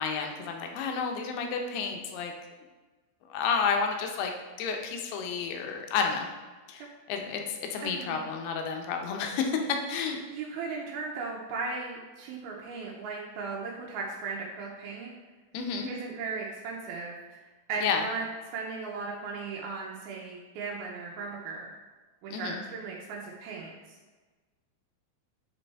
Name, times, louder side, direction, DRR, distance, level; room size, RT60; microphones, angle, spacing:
voice 1, 0.0-2.3 3.3-4.3 4.6-6.3 6.7-10.2 15.5-15.9 17.8-18.0 22.3-22.6, left 5 dB, 90° left, 3 dB, 2.8 m, -31 dB
voice 2, 7.8-8.2 10.3-15.1 15.9-17.4 17.7-18.3 18.5-21.7 22.2-23.9, right 4 dB, 85° right, -3 dB, 2.6 m, -37 dB
9.2 x 4.1 x 3.4 m, 1.3 s
omnidirectional pair, 4.4 m